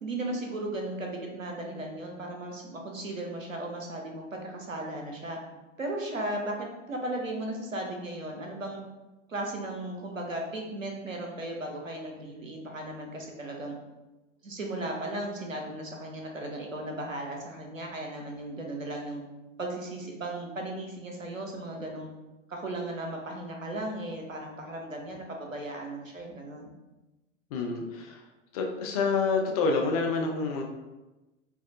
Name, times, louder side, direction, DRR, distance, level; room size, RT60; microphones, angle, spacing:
voice 1, 0.0-5.4 5.8-8.8 9.3-13.8 14.4-19.2 19.6-22.1 22.5-26.7, right 1 dB, 85° right, 1 dB, 0.8 m, -36 dB
voice 2, 27.5-28.2 28.5-30.6, left 4 dB, 30° left, 2 dB, 0.4 m, -28 dB
4.4 x 2.3 x 2.4 m, 1.1 s
figure-of-eight pair, 90°, 39 cm